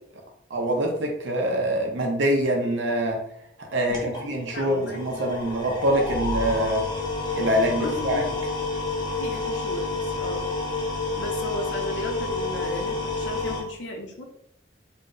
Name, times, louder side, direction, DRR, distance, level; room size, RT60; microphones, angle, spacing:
voice 1, 0.5-3.2 3.6-6.8 7.3-8.2, equal, 90° right, 1 dB, 0.7 m, -25 dB
sound 1, 3.7-13.6, left 3 dB, 25° left, 0.6 m, -29 dB
voice 2, 4.5-5.5 7.8-8.4 9.2-10.5 11.2-14.2, left 1 dB, 85° left, 1 dB, 0.6 m, -36 dB
2.6 x 2.1 x 3.7 m, 0.74 s
head